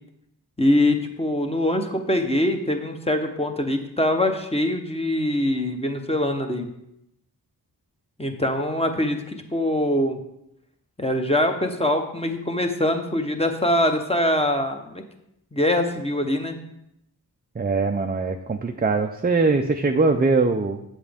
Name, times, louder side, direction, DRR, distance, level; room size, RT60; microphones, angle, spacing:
voice 1, 0.6-6.7 8.2-10.2 11.0-15.0 15.5-16.6, left 1 dB, 15° left, 4 dB, 0.8 m, -23 dB
voice 2, 17.6-20.8, right 3 dB, 25° right, 5 dB, 0.4 m, -22 dB
8.7 x 7.3 x 3.5 m, 0.81 s
wide cardioid pair, 75°, 41 cm